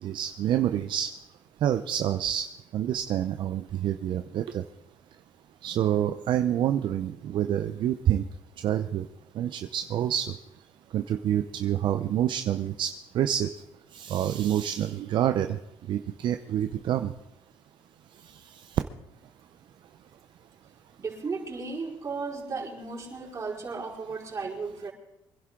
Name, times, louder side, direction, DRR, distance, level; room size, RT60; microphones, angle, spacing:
voice 1, 0.0-1.1 1.6-2.5 2.7-4.6 5.6-8.2 8.6-9.1 9.4-10.3 10.9-13.5 13.9-15.6 15.9-17.1, right 10 dB, 65° right, 8 dB, 0.7 m, -27 dB
voice 2, 21.0-24.9, right 4 dB, 35° right, -4 dB, 5.0 m, -35 dB
24.5 x 11.0 x 3.8 m, 0.87 s
cardioid pair, 85°, 9 cm